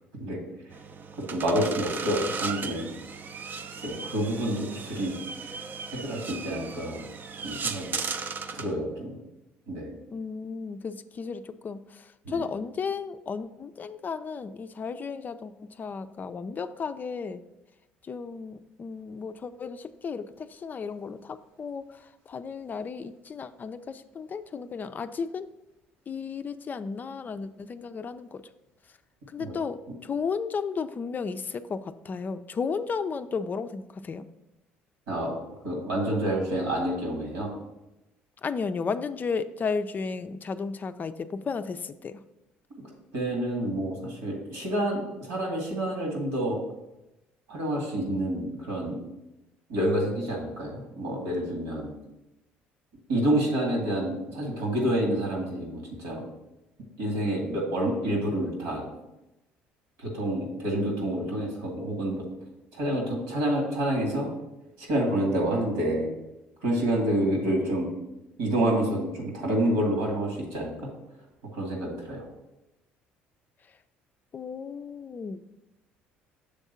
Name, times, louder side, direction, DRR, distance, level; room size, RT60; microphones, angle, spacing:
sound 1, 0.7-8.7, right 5 dB, 40° right, 0.5 m, -36 dB
voice 1, 1.3-2.9 3.8-5.2 5.4-5.6 5.9-7.0 7.4-7.9 8.5-9.2 9.7-9.9 12.3-12.4 29.4-29.5 35.1-35.3 35.6-37.5 43.1-46.6 47.5-49.0 49.7-51.9 53.1-56.2 57.0-58.8 60.0-62.2 62.7-64.3 64.8-66.1 66.6-67.9 68.4-70.9 71.5-72.2, right 1 dB, 80° right, -1 dB, 2.1 m, -28 dB
voice 2, 10.1-17.4 18.0-25.5 26.1-28.5 29.3-34.3 38.4-42.2 74.3-75.4, left 5 dB, 35° left, 11 dB, 0.4 m, -34 dB
6.4 x 3.5 x 5.6 m, 0.95 s
hypercardioid pair, 65°, 5 cm